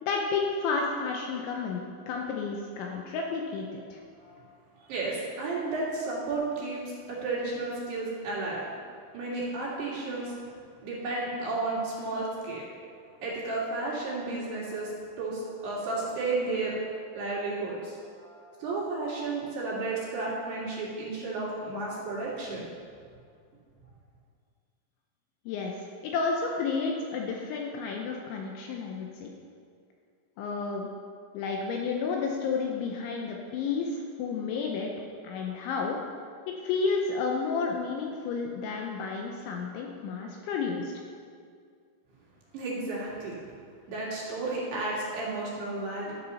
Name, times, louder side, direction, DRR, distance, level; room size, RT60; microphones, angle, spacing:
voice 1, 0.0-4.0 25.5-29.3 30.4-30.9 31.3-34.9 35.2-36.0 36.5-40.9, left 4 dB, 80° left, 1 dB, 2.9 m, -31 dB
voice 2, 4.8-8.7 9.1-10.4 10.8-12.6 13.2-16.8 17.2-22.6 42.5-43.4 43.9-46.1, right 3 dB, 60° right, -6 dB, 3.8 m, -33 dB
12.5 x 7.2 x 5.5 m, 2.2 s
omnidirectional pair, 6.0 m